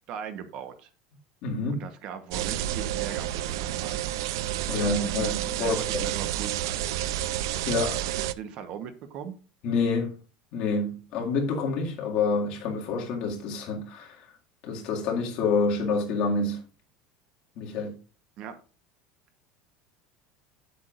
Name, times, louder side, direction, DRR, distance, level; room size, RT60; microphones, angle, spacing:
voice 1, 0.1-0.9 1.7-4.0 4.7-6.8 8.3-9.4 18.4-18.6, right 8 dB, 40° right, 1.1 m, -39 dB
voice 2, 1.4-1.8 4.7-6.1 7.7-8.0 9.6-10.2 10.5-14.3 14.6-16.6 17.6-18.0, left 4 dB, 45° left, 2.1 m, -28 dB
sound 1, 2.3-8.3, right 13 dB, 90° right, 0.5 m, -30 dB
9.5 x 8.1 x 2.5 m
cardioid pair, 175°, 2 cm